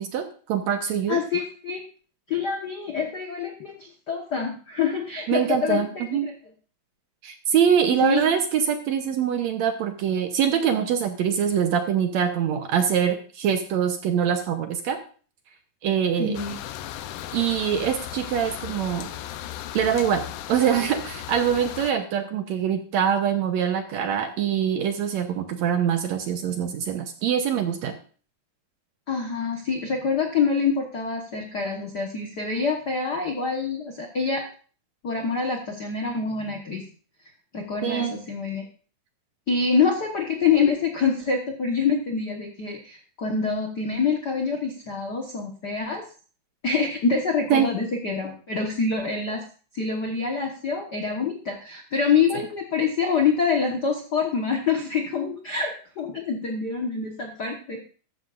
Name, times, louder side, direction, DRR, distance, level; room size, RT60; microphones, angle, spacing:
voice 1, 0.0-1.2 5.3-6.3 7.2-15.0 15.8-16.4 17.3-19.1 19.7-28.0 37.8-38.1 47.5-47.7, right 8 dB, 70° right, 6 dB, 1.9 m, -24 dB
voice 2, 1.1-1.8 2.3-6.3 8.0-8.3 16.2-16.6 29.1-34.5 35.0-36.8 37.5-38.6 39.5-46.0 46.6-49.4 49.7-57.8, left 5 dB, 60° left, 2 dB, 1.0 m, -26 dB
sound 1, 16.3-21.9, left 12 dB, 75° left, 2.1 m, -36 dB
13.5 x 13.5 x 2.5 m, 0.40 s
omnidirectional pair, 3.8 m